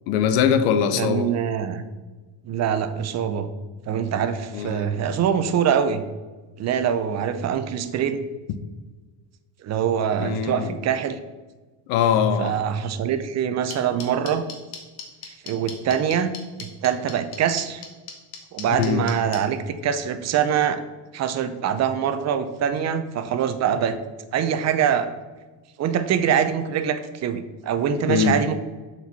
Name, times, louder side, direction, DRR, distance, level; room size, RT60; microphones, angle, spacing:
voice 1, 0.1-1.3 4.5-4.9 10.2-10.7 11.9-12.6 18.8-19.1 28.1-28.4, left 7 dB, 80° left, 11 dB, 0.8 m, -21 dB
voice 2, 1.0-1.8 2.4-3.5 3.9-6.0 6.6-8.3 9.6-11.2 12.4-14.4 15.4-16.3 16.8-17.9 18.5-20.8 21.1-24.0 24.3-25.1 25.8-28.6, right 8 dB, 40° right, 10 dB, 0.6 m, -24 dB
sound 1, 13.7-19.4, left 7 dB, 60° left, 1.6 m, -36 dB
6.8 x 4.6 x 4.1 m, 1.3 s
cardioid pair, 135°, 44 cm